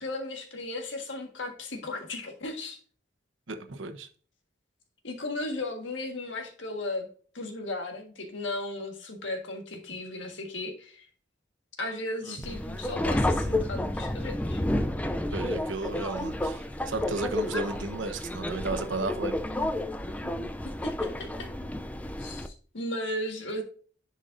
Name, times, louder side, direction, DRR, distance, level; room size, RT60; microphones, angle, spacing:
voice 1, 0.0-2.8 5.0-7.1 7.3-11.1 11.8-14.6 20.2-21.5 22.2-23.6, left 2 dB, 80° left, 1.6 m, -36 dB
voice 2, 3.5-4.1 12.3-12.4 15.3-19.4, right 3 dB, 90° right, 1.1 m, -34 dB
Subway metro underground, 12.4-22.5, left 1 dB, 10° left, 0.4 m, -31 dB
10.5 x 5.3 x 2.6 m
head